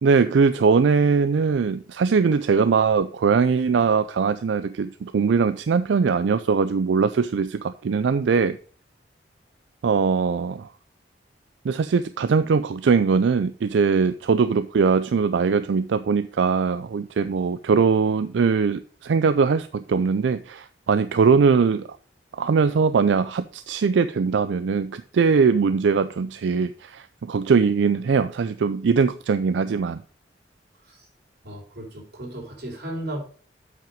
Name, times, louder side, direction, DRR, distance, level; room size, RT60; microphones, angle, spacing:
voice 1, 0.0-8.6 9.8-10.7 11.6-21.9 22.4-30.0, right 5 dB, 85° right, 0.4 m, -21 dB
voice 2, 31.4-33.2, right 1 dB, 60° right, 3.5 m, -35 dB
7.7 x 5.9 x 5.0 m
head